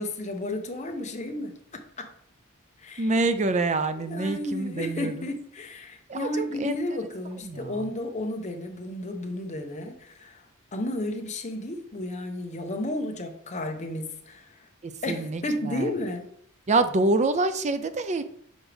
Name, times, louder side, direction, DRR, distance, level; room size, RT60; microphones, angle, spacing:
voice 1, 0.0-2.1 2.8-3.1 4.0-10.4 10.7-14.7 15.0-16.3, left 1 dB, 35° left, 4 dB, 0.8 m, -33 dB
voice 2, 3.0-5.3 6.1-6.8 7.4-7.9 14.8-15.9 16.7-18.2, right 2 dB, 35° right, 11 dB, 0.4 m, -26 dB
6.2 x 5.0 x 3.3 m, 0.65 s
head